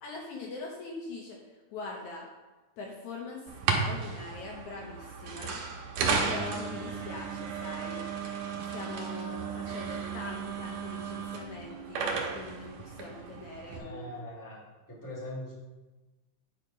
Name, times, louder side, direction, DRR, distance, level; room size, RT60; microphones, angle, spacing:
voice 1, 0.0-1.4 1.7-2.3 2.8-5.6 6.3-8.0 8.3-14.2 14.5-14.6, left 3 dB, 70° left, -1 dB, 2.1 m, -42 dB
sound 1, 3.5-13.8, right 5 dB, 65° right, 2.1 m, -34 dB
voice 2, 13.8-14.6 14.9-15.5, left 1 dB, 5° left, -6 dB, 1.8 m, -41 dB
9.4 x 5.0 x 5.1 m, 1.2 s
omnidirectional pair, 3.9 m